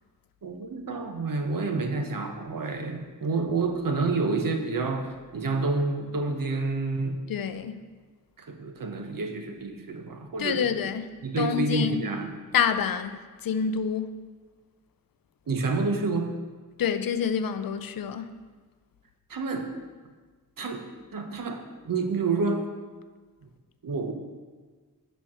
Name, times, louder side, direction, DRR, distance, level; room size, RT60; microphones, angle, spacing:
voice 1, 0.4-7.2 8.4-10.6 11.2-12.3 15.5-16.4 19.3-19.7 20.6-20.8 21.1-22.7 23.8-24.1, right 3 dB, 75° right, 0.8 m, -29 dB
voice 2, 7.3-7.8 10.4-12.0 12.5-14.2 16.8-18.4, left 7 dB, 80° left, 0.5 m, -28 dB
7.1 x 4.5 x 5.8 m
wide cardioid pair, 80°, 34 cm